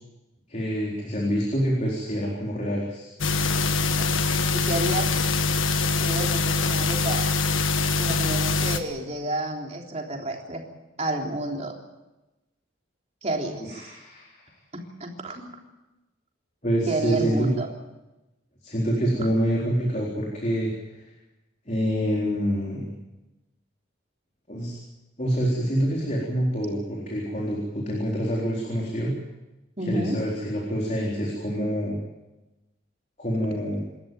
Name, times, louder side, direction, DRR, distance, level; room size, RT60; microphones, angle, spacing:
voice 1, 0.5-3.1 13.6-14.5 16.6-17.5 18.6-21.0 21.7-22.9 24.5-24.8 25.2-29.1 29.9-32.0 33.2-33.8, equal, 35° left, -2 dB, 4.1 m, -26 dB
sound 1, 3.2-8.8, left 4 dB, 80° left, 1.5 m, -24 dB
voice 2, 4.5-5.1 6.0-7.3 8.0-10.6 11.0-11.7 13.2-13.9 14.7-15.5 16.9-17.7 29.8-30.2, right 1 dB, 35° right, 1 dB, 3.5 m, -30 dB
27.0 x 13.5 x 9.3 m, 1.0 s
head